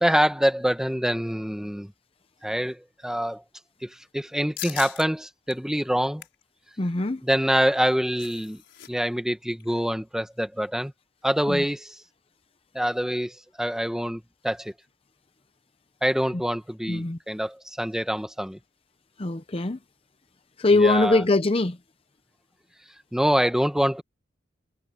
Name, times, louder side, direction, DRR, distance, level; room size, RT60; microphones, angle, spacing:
voice 1, 0.0-1.9 2.4-3.4 3.8-6.2 7.2-8.6 8.9-10.9 11.2-11.9 12.7-14.7 16.0-18.6 20.8-21.2 23.1-24.0, equal, 5° right, 1.2 m, -25 dB
sound 1, 4.6-5.1 5.5-5.6 6.0-6.4 7.7-8.9 9.2-9.3 9.6-9.9, left 12 dB, 70° left, 5.1 m, -39 dB
voice 2, 6.8-7.2 11.5-11.6 16.9-17.2 19.2-19.8 20.6-21.8, left 2 dB, 30° left, 0.7 m, -22 dB
head